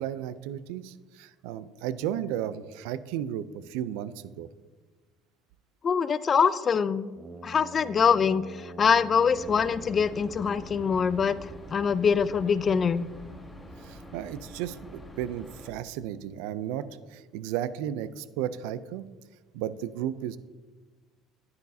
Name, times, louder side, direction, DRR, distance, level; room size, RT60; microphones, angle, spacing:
voice 1, 0.0-4.5 13.8-19.1 19.5-20.4, right 10 dB, 80° right, 15 dB, 0.4 m, -34 dB
voice 2, 5.8-7.1 7.4-11.4 11.7-13.1, left 6 dB, 35° left, 16 dB, 0.4 m, -24 dB
Brass instrument, 7.1-13.0, right 1 dB, 25° right, 0.7 m, -46 dB
sound 1, 9.3-15.7, equal, 10° left, 1.5 m, -46 dB
10.5 x 9.6 x 2.7 m, 1.3 s
supercardioid pair, 90°, 0 cm